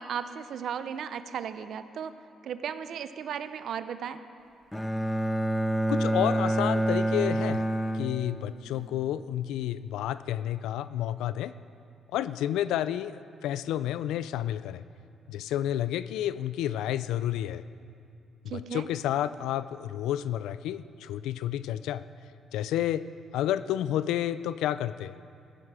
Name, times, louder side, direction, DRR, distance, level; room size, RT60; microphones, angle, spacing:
voice 1, 0.0-2.1 2.4-4.2 18.5-18.8, right 8 dB, 70° right, 11 dB, 0.6 m, -35 dB
Bowed string instrument, 4.7-8.8, right 1 dB, 10° left, 0.7 m, -28 dB
voice 2, 5.9-7.6 7.9-11.5 12.1-13.1 13.4-14.8 15.3-17.6 18.5-22.0 22.5-23.0 23.3-25.1, left 12 dB, 90° left, 15 dB, 0.3 m, -30 dB
16.0 x 10.0 x 4.9 m, 2.5 s
cardioid pair, 90°, 0 cm